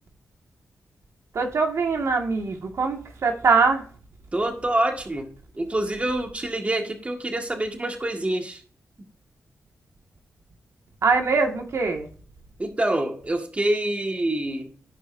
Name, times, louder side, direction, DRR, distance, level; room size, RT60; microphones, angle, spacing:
voice 1, 1.3-3.9 11.0-12.1, right 4 dB, 70° right, 1.9 m, -22 dB
voice 2, 4.3-8.6 12.6-14.7, right 1 dB, 25° right, 1.7 m, -26 dB
15.0 x 5.5 x 2.6 m
cardioid pair, 70°, 5 cm